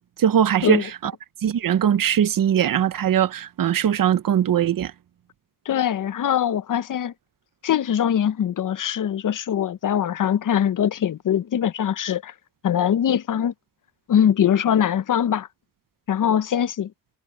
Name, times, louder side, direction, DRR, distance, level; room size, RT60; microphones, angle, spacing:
voice 1, 0.2-1.1 1.4-4.9, right 9 dB, 90° right, 0.7 m, -20 dB
voice 2, 5.7-7.1 7.6-12.3 12.6-13.5 14.1-15.5 16.1-16.9, left 9 dB, 75° left, 0.6 m, -22 dB
wide cardioid pair, 120°, 32 cm